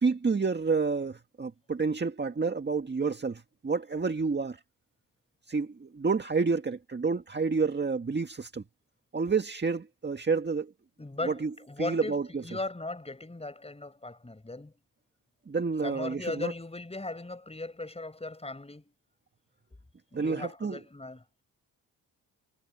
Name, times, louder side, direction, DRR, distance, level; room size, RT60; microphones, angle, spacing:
voice 1, 0.0-4.6 5.5-8.6 9.1-10.7 11.2-12.4 15.5-16.5 20.1-20.8, right 4 dB, 30° right, 1.8 m, -29 dB
voice 2, 11.0-14.7 15.8-18.9 20.1-21.2, left 2 dB, 15° left, 5.8 m, -38 dB
cardioid pair, 70°, 37 cm